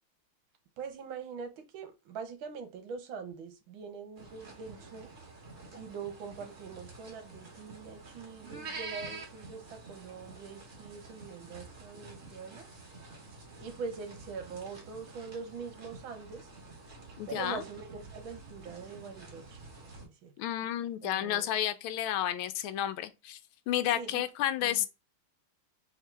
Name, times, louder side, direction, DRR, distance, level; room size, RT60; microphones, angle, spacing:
voice 1, 0.8-5.2 5.7-12.7 13.6-16.5 17.3-20.3 21.0-21.5 23.9-24.3 24.6-24.9, right 5 dB, 75° right, 1.6 m, -43 dB
sound 1, 4.2-20.1, right 3 dB, 40° right, 1.5 m, -48 dB
voice 2, 17.2-17.6 20.4-23.4 23.7-24.9, left 12 dB, 80° left, 1.4 m, -31 dB
3.7 x 3.1 x 3.2 m
omnidirectional pair, 2.3 m